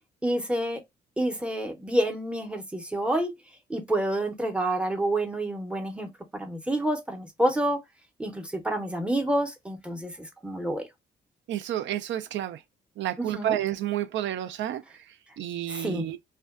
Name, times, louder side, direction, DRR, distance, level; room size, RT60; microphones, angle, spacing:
voice 1, 0.2-0.8 1.2-3.3 3.7-7.8 8.2-10.9 13.2-13.6 15.7-16.1, right 1 dB, 5° right, 0.6 m, -28 dB
voice 2, 11.5-12.6 13.0-16.2, right 12 dB, 70° right, 0.4 m, -30 dB
2.5 x 2.2 x 2.3 m
cardioid pair, 90°, 20 cm